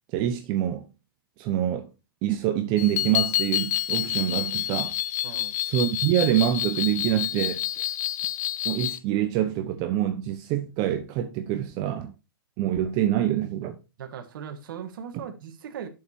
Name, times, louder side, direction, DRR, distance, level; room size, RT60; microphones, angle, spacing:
voice 1, 0.1-0.9 1.4-1.9 2.2-5.0 5.6-7.9 8.6-12.1 12.6-13.8, right 11 dB, 35° right, 0.9 m, -26 dB
sound 1, 2.8-9.0, left 13 dB, 50° left, 0.5 m, -28 dB
voice 2, 5.2-5.5 14.0-15.9, right 8 dB, 60° right, 1.5 m, -38 dB
10.5 x 6.9 x 2.7 m
hypercardioid pair, 135°, 12 cm